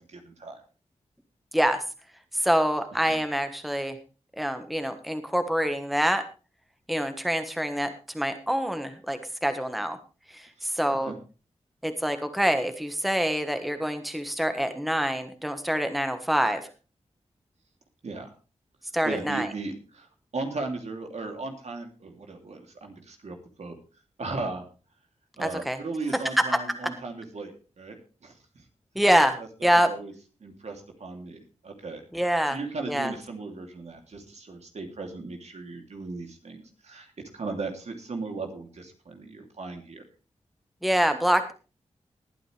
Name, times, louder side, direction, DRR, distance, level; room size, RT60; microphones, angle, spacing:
voice 1, 0.1-0.6 3.1-3.2 11.1-11.2 18.0-18.3 19.0-23.8 24.2-24.7 25.4-28.4 29.4-30.1 30.4-32.0 32.5-40.0, right 3 dB, 65° right, 3 dB, 3.0 m, -37 dB
voice 2, 2.3-4.0 4.4-6.2 6.9-10.0 10.3-11.1 11.8-16.6 18.9-19.5 25.4-25.8 26.4-26.6 28.9-29.9 32.1-32.6 32.9-33.1 40.8-41.5, equal, ahead, 8 dB, 1.4 m, -25 dB
19.5 x 9.0 x 3.4 m, 0.34 s
cardioid pair, 55°, 12 cm